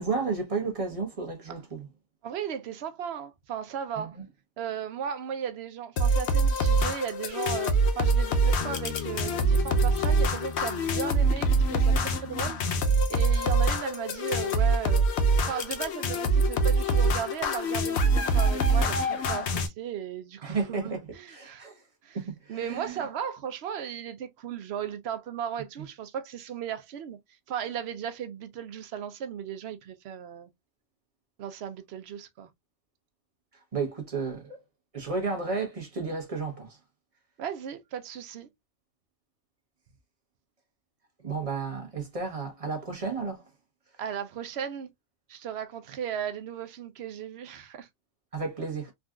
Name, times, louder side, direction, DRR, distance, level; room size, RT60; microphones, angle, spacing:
voice 1, 0.0-1.9 4.0-4.2 20.4-21.0 21.3-21.8 22.1-23.0 33.7-34.6 34.9-36.8 41.2-43.4 48.3-48.9, right 4 dB, 30° right, 0.8 m, -32 dB
voice 2, 2.2-4.2 4.6-15.2 15.4-21.7 22.0-22.2 22.5-27.2 27.5-30.5 31.4-32.5 37.4-38.5 44.0-44.9 45.3-47.9, right 8 dB, 65° right, 0.7 m, -36 dB
sound 1, 6.0-19.7, right 2 dB, 65° left, 0.8 m, -25 dB
sound 2, 8.6-13.5, left 4 dB, 80° left, 0.4 m, -40 dB
3.6 x 2.3 x 2.3 m
omnidirectional pair, 1.4 m